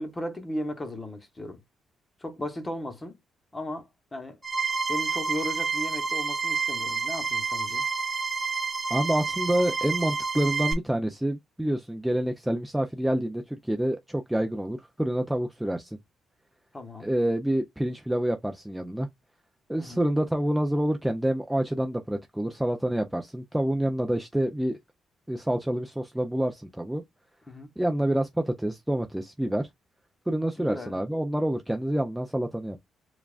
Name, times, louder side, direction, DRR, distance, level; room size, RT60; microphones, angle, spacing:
voice 1, 0.0-1.6 2.2-3.2 3.5-4.4 4.9-7.9 16.7-17.1 19.8-20.0 27.5-27.7 30.6-31.0, left 1 dB, 15° left, 0.9 m, -36 dB
sound 1, 4.4-10.7, right 5 dB, 25° right, 1.3 m, -29 dB
voice 2, 8.9-16.0 17.0-19.1 19.7-24.8 25.3-27.0 27.8-29.7 30.3-32.8, right 1 dB, 5° right, 0.4 m, -27 dB
6.9 x 2.3 x 2.3 m
cardioid pair, 150°, 0 cm